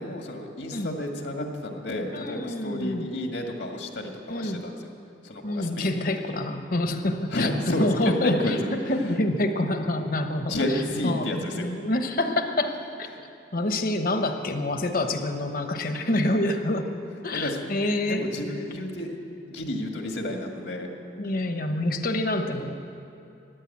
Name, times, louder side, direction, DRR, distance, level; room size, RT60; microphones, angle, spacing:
voice 1, 0.0-4.9 5.2-6.1 7.3-9.1 10.4-11.7 17.3-17.6 18.0-19.1 19.5-20.9, left 1 dB, 75° left, 3 dB, 1.8 m, -31 dB
voice 2, 2.1-3.1 4.3-4.6 5.4-8.5 8.9-10.5 11.0-13.1 13.5-16.9 17.2-18.2 21.2-22.7, left 1 dB, 50° left, 6 dB, 1.1 m, -27 dB
14.5 x 10.0 x 8.4 m, 2.7 s
head